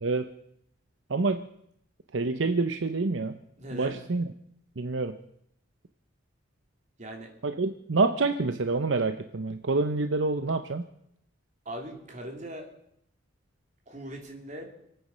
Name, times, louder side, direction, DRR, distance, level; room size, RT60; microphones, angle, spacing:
voice 1, 1.1-1.4 2.1-3.3 3.7-4.2 4.8-5.1 7.4-10.8, right 3 dB, 70° right, 8 dB, 0.7 m, -27 dB
voice 2, 3.6-4.0 7.0-7.3 11.6-12.7 13.9-14.7, right 1 dB, 40° right, 1 dB, 3.1 m, -39 dB
27.0 x 9.3 x 5.5 m, 0.73 s
head